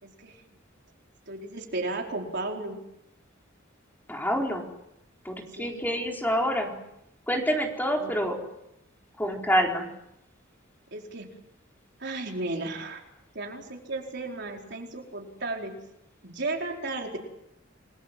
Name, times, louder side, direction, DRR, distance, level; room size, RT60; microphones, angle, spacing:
voice 1, 0.0-0.4 1.3-2.8 5.5-5.9 8.0-8.1 10.9-11.3 12.0-13.0 13.3-15.7 16.2-17.2, right 2 dB, 60° right, 1 dB, 4.6 m, -34 dB
voice 2, 4.1-4.6 5.2-6.7 7.3-8.4 9.2-9.9, equal, 10° left, 1 dB, 4.3 m, -27 dB
29.5 x 21.5 x 7.6 m, 0.84 s
head